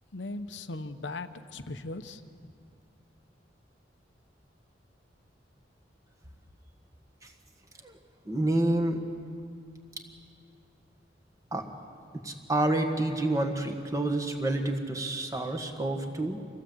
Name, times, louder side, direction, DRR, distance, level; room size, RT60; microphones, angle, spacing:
voice 1, 0.1-2.5, left 2 dB, 80° left, 9 dB, 1.0 m, -39 dB
voice 2, 8.3-9.0 11.5-11.7 12.2-16.4, right 1 dB, 20° right, 4 dB, 1.7 m, -28 dB
26.5 x 16.0 x 8.0 m, 2.3 s
head